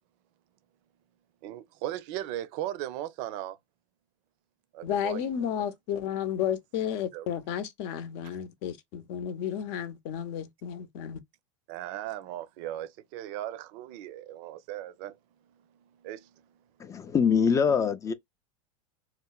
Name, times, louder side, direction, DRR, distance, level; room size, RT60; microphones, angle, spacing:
voice 1, 1.4-3.6 4.7-5.2 7.1-7.3 11.7-15.2 16.0-16.3, right 13 dB, 55° right, 0.6 m, -37 dB
voice 2, 4.8-11.2, left 9 dB, 55° left, 0.7 m, -32 dB
voice 3, 16.8-18.1, left 6 dB, 20° left, 0.4 m, -24 dB
3.0 x 2.0 x 2.3 m
hypercardioid pair, 115°, 16 cm